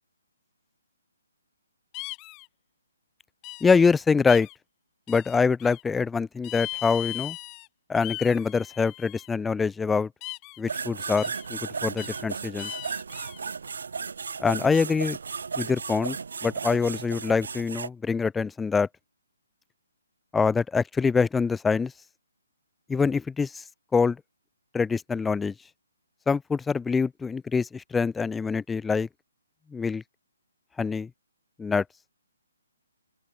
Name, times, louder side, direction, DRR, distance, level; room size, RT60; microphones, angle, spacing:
sound 1, 1.9-2.5 3.4-3.9 4.3-4.6 5.1-5.8 6.4-7.7 8.0-9.3 10.2-10.6 11.2-11.5 12.0-12.2 12.6-13.4, left 25 dB, 25° left, 6.9 m, -38 dB
voice 1, 3.6-4.5 5.1-7.4 7.9-10.1 10.6-12.7 14.4-15.2 15.6-16.2 16.4-18.9 20.3-21.9 22.9-23.6 23.9-24.2 24.7-25.5 26.3-29.1 29.7-30.0 30.8-31.1 31.6-31.8, left 5 dB, 5° left, 0.5 m, -24 dB
sound 2, 10.7-17.9, right 5 dB, 70° right, 3.9 m, -35 dB
open air
hypercardioid pair, 145°, 0 cm